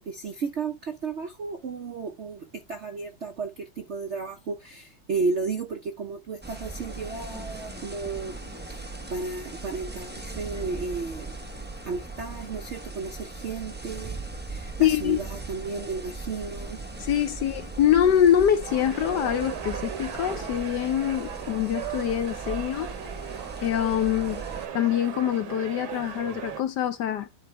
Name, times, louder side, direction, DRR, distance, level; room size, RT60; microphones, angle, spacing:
voice 1, 0.0-8.3 8.7-11.3 11.8-14.2 14.5-16.8, right 4 dB, 65° right, 0.7 m, -33 dB
sound 1, 6.4-24.7, right 3 dB, 10° right, 0.4 m, -39 dB
voice 2, 14.8-15.2 17.0-22.9 23.6-24.4 24.7-27.3, left 10 dB, 70° left, 1.1 m, -24 dB
sound 2, 18.6-26.6, right 9 dB, 80° right, 1.9 m, -37 dB
10.5 x 4.3 x 3.2 m
omnidirectional pair, 2.2 m